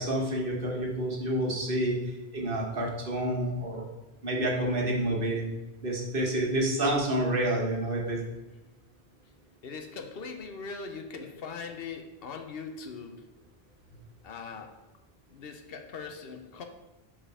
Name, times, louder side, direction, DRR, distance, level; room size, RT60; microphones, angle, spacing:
voice 1, 0.0-3.9 4.2-5.4 5.8-8.2, right 1 dB, 60° right, -1 dB, 1.5 m, -29 dB
voice 2, 9.6-13.3 14.2-14.8 15.3-16.7, left 5 dB, 70° left, 5 dB, 0.9 m, -41 dB
5.4 x 5.0 x 4.8 m, 1.0 s
omnidirectional pair, 1.0 m